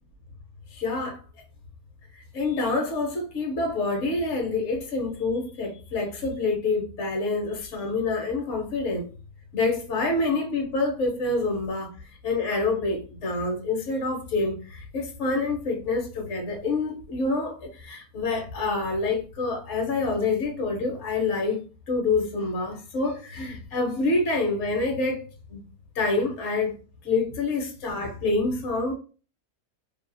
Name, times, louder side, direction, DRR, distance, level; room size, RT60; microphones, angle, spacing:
voice 1, 0.7-1.2 2.1-9.1 9.5-25.6 25.9-26.7 27.0-28.9, left 3 dB, 60° left, 0.9 m, -27 dB
2.6 x 2.3 x 2.5 m
omnidirectional pair, 1.6 m